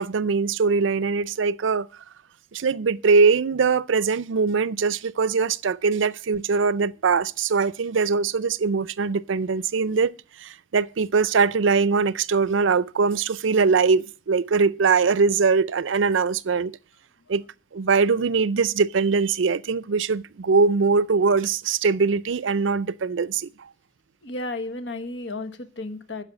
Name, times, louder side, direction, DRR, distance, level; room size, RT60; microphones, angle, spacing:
voice 1, 0.0-1.9 2.5-10.1 10.4-16.8 17.3-17.4 17.7-23.7, right 5 dB, 85° right, 0.5 m, -22 dB
voice 2, 24.2-26.2, left 2 dB, 65° left, 1.3 m, -33 dB
10.0 x 6.8 x 8.3 m
head